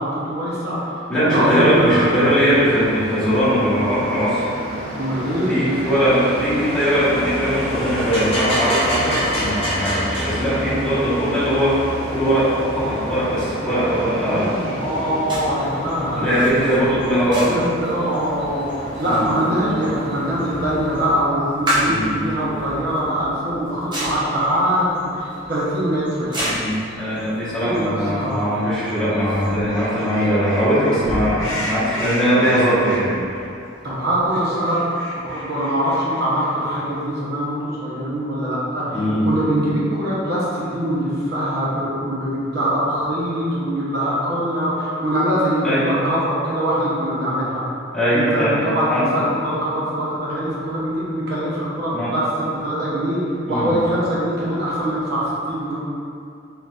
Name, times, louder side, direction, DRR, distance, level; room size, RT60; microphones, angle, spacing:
voice 1, 0.0-0.9 1.2-2.1 4.9-5.7 14.3-16.7 17.4-26.6 27.6-28.4 33.8-34.8 35.2-47.6 48.1-53.2 53.5-55.8, equal, 55° right, -8 dB, 0.9 m, -23 dB
voice 2, 1.1-4.5 5.5-14.5 16.1-17.5 19.0-19.2 21.8-22.2 26.4-33.1 38.9-39.2 45.6-45.9 47.9-48.5 48.9-49.2 51.9-52.1 53.4-53.7, equal, 5° left, -12 dB, 1.2 m, -20 dB
sound 1, 1.4-21.1, equal, 30° left, 0.7 m, -29 dB
sound 2, 15.3-34.4, equal, 25° right, 0.8 m, -32 dB
sound 3, 28.5-28.8 29.2-33.5 33.7-33.8 34.0-36.8, left 1 dB, 80° left, 0.8 m, -33 dB
4.1 x 3.8 x 2.4 m, 2.5 s
head